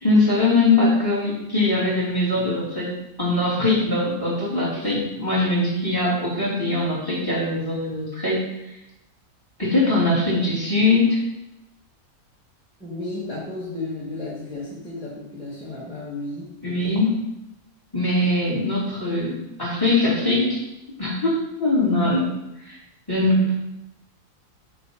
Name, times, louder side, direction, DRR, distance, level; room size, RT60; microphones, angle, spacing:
voice 1, 0.0-2.9 3.2-8.5 9.6-11.2 16.6-17.1 17.9-20.6 21.0-22.3 22.7-22.8 23.1-23.5, left 2 dB, 15° left, -7 dB, 2.8 m, -21 dB
voice 2, 12.8-17.0 18.1-18.3, left 2 dB, 5° right, -8 dB, 1.9 m, -34 dB
7.1 x 3.4 x 6.2 m, 0.89 s
omnidirectional pair, 1.6 m